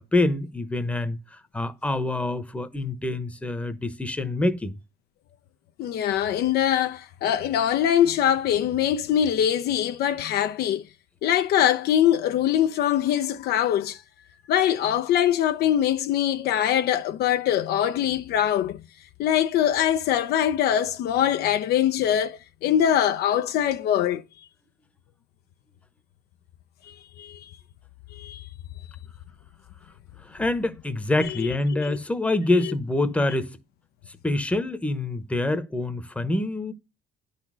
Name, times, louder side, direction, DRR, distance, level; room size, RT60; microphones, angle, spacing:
voice 1, 0.0-4.7 30.2-33.6 34.1-36.7, left 2 dB, 5° left, 0.9 m, -26 dB
voice 2, 5.8-10.8 11.2-14.0 14.5-18.8 19.2-24.2 26.9-27.4 28.2-28.4 31.7-32.0, left 10 dB, 70° left, 0.6 m, -23 dB
10.0 x 4.1 x 6.1 m
cardioid pair, 110°, 17 cm